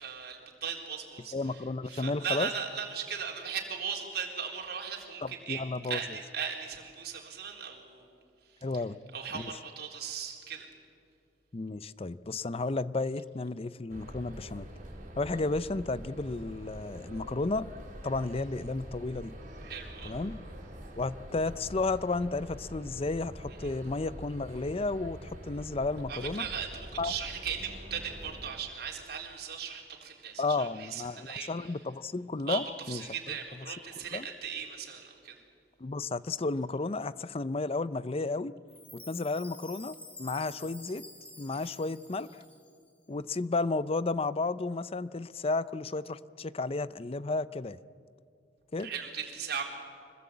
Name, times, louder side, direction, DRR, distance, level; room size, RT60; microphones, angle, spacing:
voice 1, 0.0-1.6 1.9-8.1 9.1-10.7 19.6-20.1 26.1-31.7 32.5-32.6 32.9-35.3 48.8-49.6, right 7 dB, 60° right, 1 dB, 3.9 m, -38 dB
voice 2, 1.3-2.5 5.2-6.0 8.6-9.0 9.3-9.5 11.5-14.7 15.2-17.7 18.0-19.3 20.0-20.4 21.0-26.5 27.0-27.1 30.4-33.0 34.1-34.3 35.8-38.6 38.9-41.0 41.4-42.3 43.1-47.8 48.7-48.9, left 3 dB, 35° left, 16 dB, 0.6 m, -32 dB
sound 1, 13.9-28.5, equal, 45° right, 5.5 m, -45 dB
Chime, 38.7-42.9, left 2 dB, 10° left, 2.0 m, -49 dB
25.5 x 21.0 x 8.5 m, 2.4 s
head